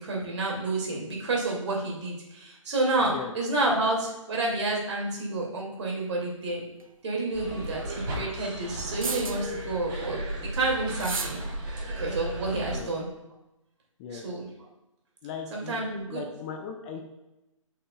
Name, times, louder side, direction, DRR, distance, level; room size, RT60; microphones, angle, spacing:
voice 1, 0.0-6.6 7.0-10.2 10.5-11.4 12.0-13.0 14.1-14.5 15.5-16.2, right 2 dB, 55° right, -2 dB, 2.4 m, -29 dB
sound 1, 6.8-6.9 8.8-9.6 10.9-11.5, right 4 dB, 85° right, 0.7 m, -33 dB
sound 2, 7.3-12.8, right 1 dB, 40° right, 2.7 m, -35 dB
voice 2, 15.2-17.1, left 6 dB, 20° left, 4 dB, 0.5 m, -38 dB
11.5 x 5.6 x 2.3 m, 0.95 s
figure-of-eight pair, 135°, 17 cm